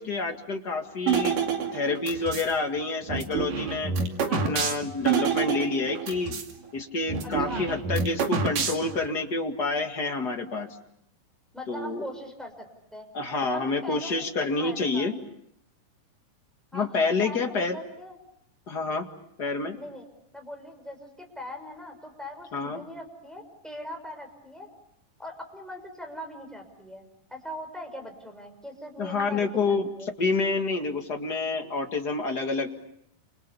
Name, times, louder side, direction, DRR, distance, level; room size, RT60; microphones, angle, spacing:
voice 1, 0.0-1.4 1.7-3.9 4.3-6.3 6.7-10.7 11.7-12.0 13.1-15.1 16.7-17.8 18.7-19.1 19.4-19.8 22.5-22.8 29.0-29.9 30.2-32.8, left 3 dB, 35° left, 4 dB, 2.0 m, -28 dB
sound 1, 1.1-2.5 3.1-6.5 6.8-6.9 7.1-9.1, right 6 dB, 70° right, 4.1 m, -28 dB
voice 2, 4.3-4.6 7.2-7.7 11.5-12.7 12.9-13.1 13.5-15.1 16.7-18.2 19.8-20.1 20.3-24.7 25.2-30.1, left 1 dB, ahead, 5 dB, 5.6 m, -41 dB
29.5 x 28.0 x 7.0 m, 0.74 s
omnidirectional pair, 4.0 m